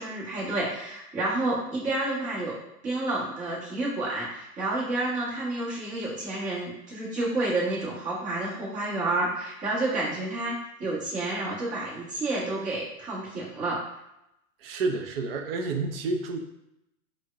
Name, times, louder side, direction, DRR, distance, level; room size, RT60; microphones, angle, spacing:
voice 1, 0.0-2.5 2.8-10.5 10.8-13.8, right 2 dB, 15° right, -6 dB, 1.0 m, -30 dB
voice 2, 14.6-16.4, right 3 dB, 40° right, 5 dB, 0.5 m, -29 dB
4.5 x 2.2 x 2.4 m, 0.84 s
hypercardioid pair, 125°, 45 cm